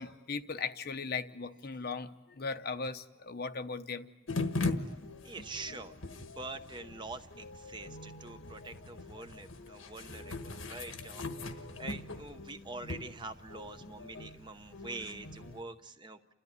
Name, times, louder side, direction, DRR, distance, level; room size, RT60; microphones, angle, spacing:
voice 1, 0.0-4.1 7.9-8.0 8.4-8.5, left 4 dB, 50° left, 9 dB, 0.8 m, -38 dB
sound 1, 4.3-15.6, left 3 dB, 80° left, 1.5 m, -40 dB
voice 2, 5.2-16.3, right 3 dB, 20° right, 8 dB, 0.8 m, -45 dB
29.5 x 13.5 x 9.6 m, 1.1 s
head